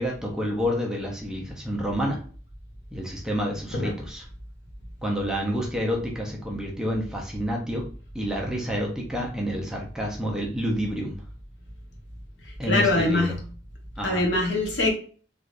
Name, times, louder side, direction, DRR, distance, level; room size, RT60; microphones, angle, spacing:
voice 1, 0.0-2.2 2.9-4.2 5.0-7.8 8.1-11.2 12.6-13.3 14.0-14.2, equal, 5° right, -1 dB, 0.5 m, -29 dB
voice 2, 12.7-13.4 14.0-14.9, left 2 dB, 75° left, 0 dB, 0.9 m, -23 dB
3.3 x 2.5 x 2.4 m, 0.42 s
head